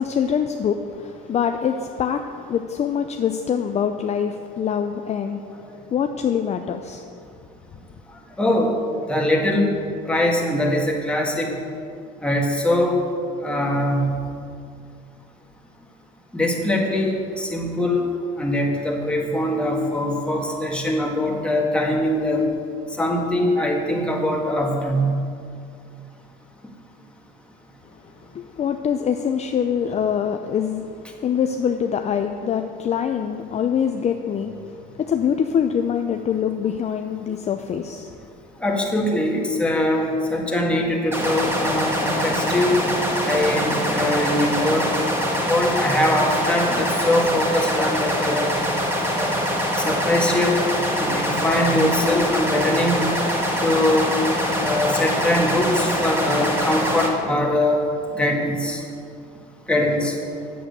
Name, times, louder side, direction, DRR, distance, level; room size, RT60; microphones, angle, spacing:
voice 1, 0.0-5.4 5.9-7.1 28.3-38.1, left 8 dB, 35° left, 6 dB, 0.5 m, -24 dB
voice 2, 8.4-8.7 9.1-9.7 10.1-11.5 12.2-13.0 13.4-14.1 16.3-18.0 18.4-22.5 23.0-25.2 38.6-42.8 43.2-44.9 45.4-48.5 49.0-49.4 49.8-50.6 50.9-53.0 53.6-54.1 54.6-57.8 58.1-58.8 59.7-60.1, left 1 dB, 5° left, -1 dB, 1.8 m, -22 dB
sound 1, 41.1-57.1, equal, 10° right, 1.8 m, -24 dB
8.5 x 7.9 x 6.8 m, 2.4 s
cardioid pair, 105°, 19 cm